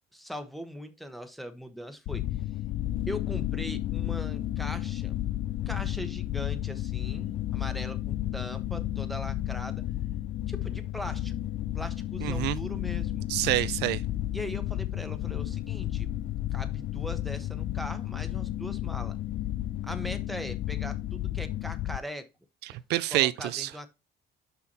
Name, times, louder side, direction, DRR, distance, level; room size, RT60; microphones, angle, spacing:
voice 1, 0.1-2.2 3.1-5.2 5.7-9.8 10.5-11.3 11.7-13.3 14.3-16.1 16.5-19.2 19.8-22.3 23.1-23.9, equal, ahead, 1.0 m, -40 dB
sound 1, 2.1-22.0, left 13 dB, 60° left, 0.4 m, -32 dB
voice 2, 12.2-12.6 13.3-14.0 22.7-23.7, right 16 dB, 80° right, 0.4 m, -27 dB
5.7 x 5.7 x 4.1 m
cardioid pair, 110°, 17 cm